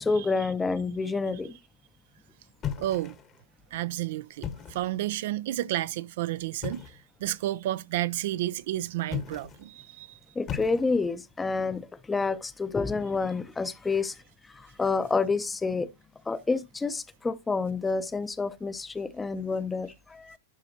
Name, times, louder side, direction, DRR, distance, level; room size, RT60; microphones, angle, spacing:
voice 1, 0.0-1.6 10.4-14.1 14.5-15.9 16.3-20.4, left 4 dB, 15° left, 0.6 m, -28 dB
sound 1, 2.6-3.4 4.3-5.0 6.6-7.1 9.0-9.7 10.5-11.2, left 9 dB, 35° left, 1.1 m, -37 dB
voice 2, 2.8-3.2 3.7-10.2, right 14 dB, 60° right, 0.4 m, -31 dB
11.0 x 4.8 x 2.7 m
hypercardioid pair, 105°, 0 cm